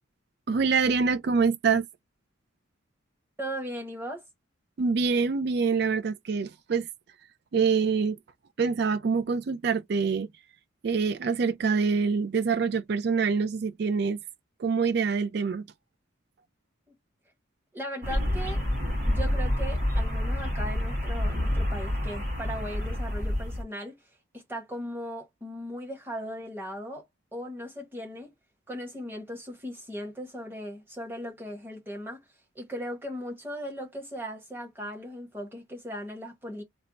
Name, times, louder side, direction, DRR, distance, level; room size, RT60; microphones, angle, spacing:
voice 1, 0.5-1.9 4.8-6.9 7.5-8.2 8.6-10.3 10.8-14.2 14.6-15.6, right 5 dB, 55° right, 0.3 m, -25 dB
voice 2, 3.4-4.2 17.7-18.6 19.1-24.0 24.3-27.0 27.3-28.3 28.7-32.2 32.5-36.6, equal, 10° right, 1.1 m, -38 dB
sound 1, 18.0-23.6, left 1 dB, 35° right, 1.6 m, -28 dB
3.3 x 2.1 x 3.9 m
head